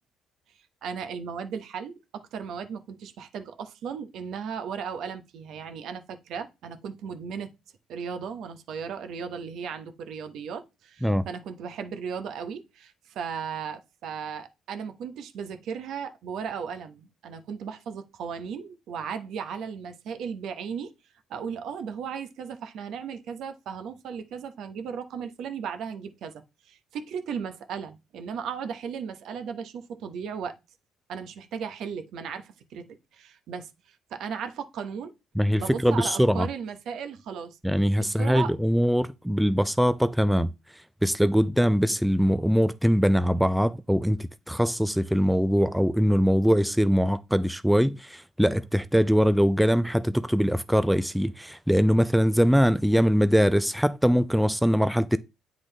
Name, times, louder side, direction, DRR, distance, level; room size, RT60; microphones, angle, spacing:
voice 1, 0.8-7.5 7.9-20.9 21.3-30.5 31.1-32.9 33.1-35.1 35.6-37.6 38.0-38.5, right 6 dB, 70° right, 0.9 m, -36 dB
voice 2, 35.4-36.5 37.6-40.5 41.0-55.2, equal, ahead, 0.3 m, -22 dB
8.2 x 3.8 x 3.3 m
cardioid pair, 90°, 0 cm